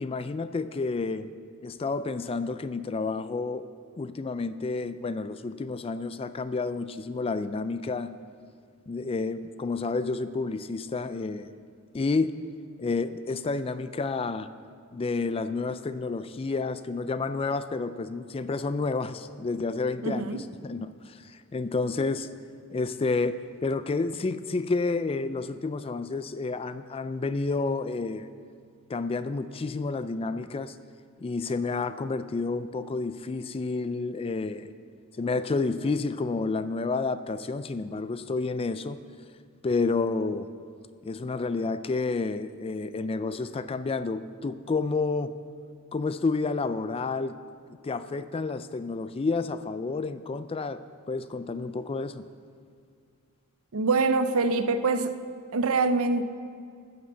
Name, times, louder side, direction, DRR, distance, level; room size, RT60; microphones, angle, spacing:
voice 1, 0.0-1.3 1.6-3.7 4.0-8.1 8.9-11.6 11.9-12.4 12.8-14.5 14.9-22.3 22.7-28.3 28.9-30.8 31.2-34.7 35.2-39.0 39.6-40.5 41.0-45.3 45.9-47.4 47.8-50.8 51.1-52.2, left 3 dB, 25° left, 13 dB, 0.3 m, -30 dB
voice 2, 20.0-20.4 53.7-55.1 55.5-56.2, right 3 dB, 65° right, 10 dB, 0.7 m, -24 dB
14.0 x 7.7 x 6.7 m, 2.2 s
head